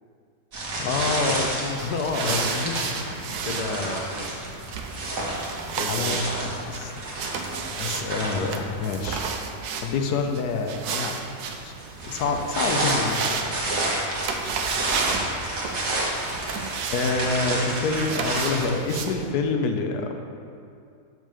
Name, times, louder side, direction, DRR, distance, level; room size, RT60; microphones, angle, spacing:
sound 1, 0.5-9.1 11.7-19.0, right 1 dB, 60° right, 1.7 m, -30 dB
voice 1, 0.8-2.4 5.9-6.3 6.7-7.1 7.8-9.2 9.8-11.3 11.6-11.8 12.1-13.4 16.9-20.1, left 4 dB, 80° left, 4 dB, 1.2 m, -27 dB
sound 2, 1.6-19.1, right 5 dB, 80° right, 1.2 m, -33 dB
voice 2, 2.2-4.3 5.7-6.2 13.7-13.9, left 3 dB, 60° left, -1 dB, 0.4 m, -33 dB
6.3 x 5.2 x 6.8 m, 2.3 s
omnidirectional pair, 1.7 m